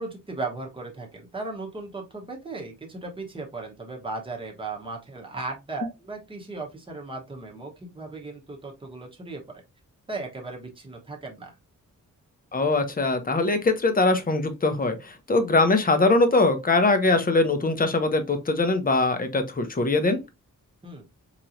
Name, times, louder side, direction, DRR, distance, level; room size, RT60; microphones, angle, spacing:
voice 1, 0.0-9.6 10.1-11.6 20.8-21.1, right 3 dB, 15° right, 1.0 m, -36 dB
voice 2, 12.5-20.2, left 3 dB, 25° left, 0.7 m, -22 dB
4.5 x 3.0 x 2.5 m
wide cardioid pair, 155°, 33 cm